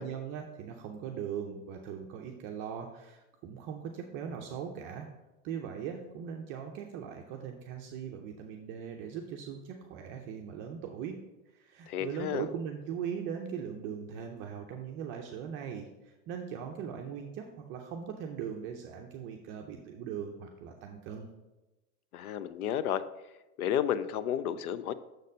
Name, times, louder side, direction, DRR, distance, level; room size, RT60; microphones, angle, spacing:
voice 1, 0.0-5.1 5.4-11.2 11.5-21.3, right 8 dB, 30° right, 2 dB, 0.5 m, -40 dB
voice 2, 11.9-12.5 22.1-23.0 23.6-24.9, left 10 dB, 85° left, 14 dB, 0.6 m, -31 dB
6.6 x 4.1 x 5.2 m, 1.0 s
supercardioid pair, 140°, 43 cm